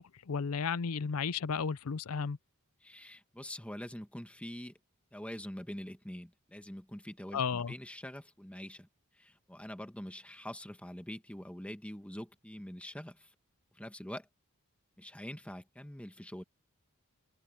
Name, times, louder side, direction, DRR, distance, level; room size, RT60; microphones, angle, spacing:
voice 1, 0.0-2.4 7.3-7.7, left 6 dB, 75° left, 0.5 m, -33 dB
voice 2, 2.8-4.8 5.1-8.9 9.1-13.3 13.7-14.3 15.0-16.4, equal, 5° left, 1.3 m, -45 dB
open air
head